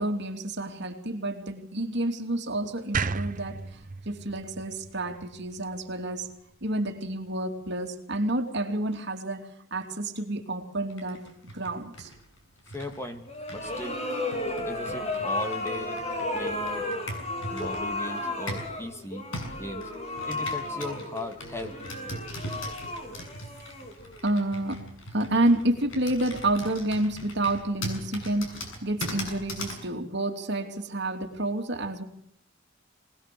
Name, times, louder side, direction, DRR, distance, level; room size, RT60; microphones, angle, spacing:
voice 1, 0.0-3.6 4.0-6.3 6.6-12.1 24.2-24.8 25.1-32.0, right 1 dB, 60° right, 4 dB, 3.0 m, -29 dB
sound 1, 2.9-6.1, right 4 dB, 40° right, 0.9 m, -34 dB
Computer keyboard, 10.9-18.8 19.3-29.8, equal, 80° left, 7.1 m, -40 dB
voice 2, 12.7-14.0 14.7-16.0 16.3-16.9 17.5-19.3 19.5-19.9 20.3-21.8, left 1 dB, 15° left, 6 dB, 2.1 m, -38 dB
sound 2, 13.3-24.3, left 2 dB, 35° left, 3.8 m, -33 dB
25.0 x 19.5 x 6.9 m, 0.70 s
head